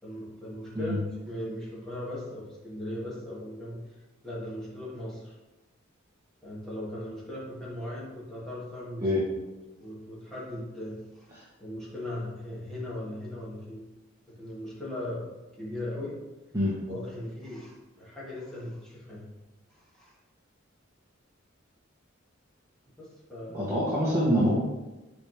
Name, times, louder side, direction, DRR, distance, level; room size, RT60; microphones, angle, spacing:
voice 1, 0.0-5.4 6.4-9.1 9.8-11.3 11.6-13.9 14.3-16.2 16.9-19.3 19.7-20.2 23.0-23.7, left 1 dB, ahead, -9 dB, 2.6 m, -38 dB
voice 2, 23.5-24.5, equal, 15° right, -8 dB, 1.5 m, -25 dB
9.5 x 5.1 x 3.6 m, 1.1 s
head